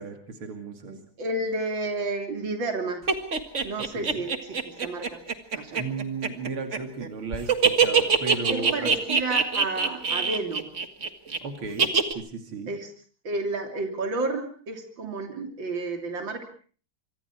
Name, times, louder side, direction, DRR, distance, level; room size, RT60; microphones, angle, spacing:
voice 1, 0.0-1.0 4.0-4.2 5.8-8.9 11.4-12.7, right 4 dB, 90° right, 5 dB, 3.5 m, -35 dB
voice 2, 0.9-3.1 3.6-5.2 5.5-5.8 8.5-10.7 12.7-12.9 13.2-16.4, right 2 dB, 65° right, 5 dB, 3.8 m, -31 dB
sound 1, 3.1-7.1 7.3-11.4 11.8-12.1, right 5 dB, 35° right, 2.0 m, -23 dB
26.0 x 25.0 x 4.7 m, 0.42 s
omnidirectional pair, 2.3 m